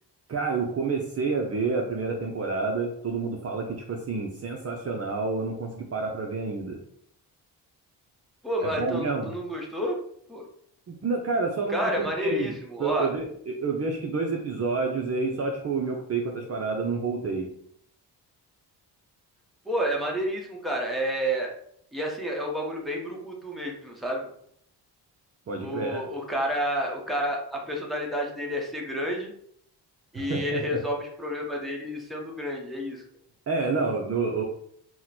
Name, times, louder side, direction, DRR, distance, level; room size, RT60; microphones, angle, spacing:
voice 1, 0.3-6.8 8.6-9.3 10.9-12.5 12.8-17.5 25.5-26.0 30.1-30.8 33.5-34.4, right 4 dB, 35° right, 0 dB, 0.5 m, -29 dB
voice 2, 8.4-10.0 10.3-10.4 11.7-13.1 19.7-21.5 21.9-24.3 25.6-29.3 30.1-33.0, equal, ahead, -1 dB, 0.8 m, -30 dB
2.9 x 2.2 x 4.0 m, 0.66 s
cardioid pair, 90°, 42 cm